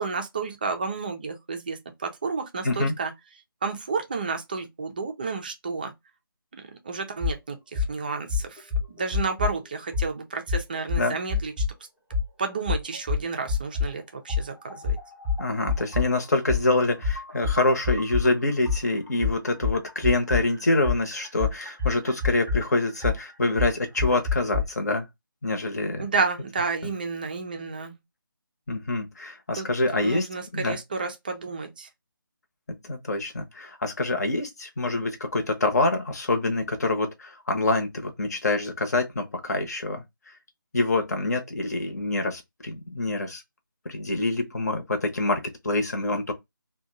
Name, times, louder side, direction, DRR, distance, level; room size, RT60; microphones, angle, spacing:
voice 1, 0.0-3.1 3.6-5.9 6.5-11.6 12.4-15.0 26.0-28.0 29.6-29.7 29.9-31.9, right 4 dB, 25° right, 0.4 m, -31 dB
sound 1, 7.2-7.4 7.7-7.9 8.3-9.6 9.9-10.1 10.5-11.7 12.1-12.3 12.7-13.9 14.3-18.3 18.6-24.6, left 5 dB, 10° left, 0.7 m, -27 dB
voice 2, 15.4-25.1 25.4-26.0 28.7-30.3 30.5-30.8 32.8-40.3 40.7-43.4 43.8-46.3, left 2 dB, 50° left, 0.9 m, -26 dB
2.6 x 2.2 x 3.8 m
figure-of-eight pair, 160°, 12 cm